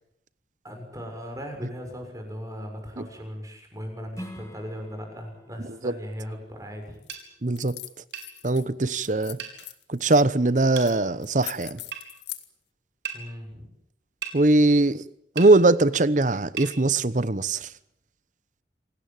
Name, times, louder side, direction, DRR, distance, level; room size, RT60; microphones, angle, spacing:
voice 1, 0.6-7.0 13.1-13.7, equal, 20° right, 6.6 m, -38 dB
Strum, 4.1-9.3, equal, 15° left, 2.6 m, -48 dB
sound 1, 7.0-7.2 7.5-8.7 9.0-10.2 10.8-11.0 11.2-12.4, left 15 dB, 75° left, 1.9 m, -40 dB
sound 2, 7.1-7.3 8.1-8.3 9.4-9.6 10.8-10.9 11.9-12.1 13.1-13.2 14.2-14.4 15.4-15.5 16.6-16.7, right 8 dB, 70° right, 4.6 m, -35 dB
voice 2, 7.4-7.8 8.4-9.4 9.9-11.8 14.3-15.0 15.3-17.7, right 2 dB, 45° right, 0.9 m, -21 dB
27.0 x 18.5 x 9.0 m
head